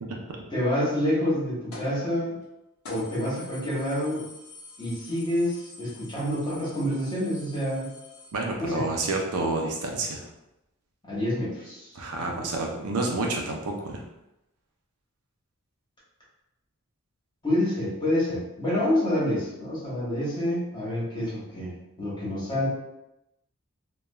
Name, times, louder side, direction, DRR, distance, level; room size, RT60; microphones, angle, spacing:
voice 1, 0.5-2.4 2.9-4.3 4.8-7.9 8.6-8.8 11.0-11.9 12.3-12.5 17.4-22.7, left 1 dB, 20° left, -8 dB, 1.1 m, -28 dB
sound 1, 1.7-2.0 2.4-2.5 2.8-8.3, left 3 dB, 75° left, 0.8 m, -47 dB
voice 2, 8.3-10.3 11.9-14.0, right 2 dB, 85° right, 1 dB, 0.6 m, -29 dB
3.0 x 2.3 x 2.3 m, 0.90 s
head